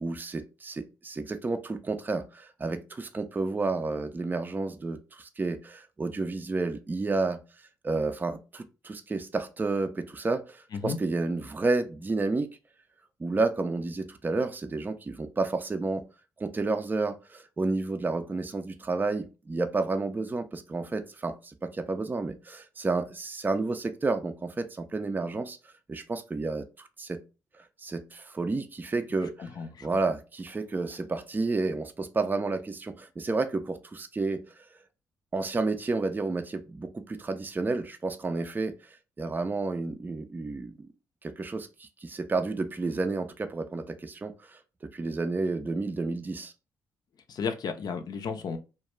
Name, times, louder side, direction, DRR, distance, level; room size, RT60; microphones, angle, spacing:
voice 1, 0.0-7.4 7.8-12.5 13.2-16.0 16.4-25.6 25.9-27.2 27.6-29.5 29.8-34.4 35.3-38.8 39.2-40.8 41.2-44.6 44.9-46.5, right 3 dB, 25° right, 0.4 m, -31 dB
voice 2, 29.4-29.9 47.3-48.6, left 6 dB, 55° left, 0.5 m, -33 dB
2.3 x 2.2 x 2.9 m
supercardioid pair, 50°, 8 cm